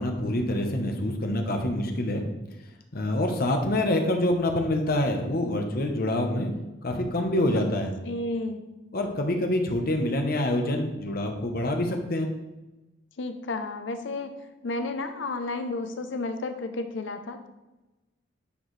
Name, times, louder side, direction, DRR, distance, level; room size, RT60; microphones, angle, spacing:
voice 1, 0.0-2.2 2.9-6.5 6.8-7.9 8.9-12.3, left 1 dB, 55° left, 4 dB, 0.9 m, -26 dB
voice 2, 8.0-8.6 13.2-14.3 14.6-17.5, left 2 dB, 75° left, 8 dB, 0.6 m, -32 dB
10.0 x 4.6 x 3.2 m, 1.0 s
head